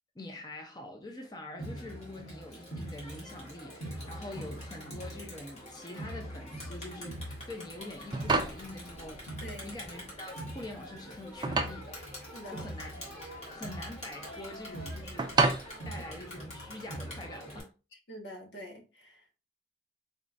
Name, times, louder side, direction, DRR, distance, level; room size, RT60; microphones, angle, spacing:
voice 1, 0.2-9.3 9.6-12.0 12.5-13.0 13.5-15.4 15.8-17.7, left 1 dB, 25° left, 0.6 m, -45 dB
Crowd, 1.6-17.6, equal, 40° left, 1.6 m, -43 dB
sound 1, 7.9-16.8, right 3 dB, 25° right, 0.4 m, -33 dB
voice 2, 9.4-9.8 12.2-12.7 17.9-19.3, equal, 80° left, 1.3 m, -46 dB
4.1 x 3.6 x 2.6 m
head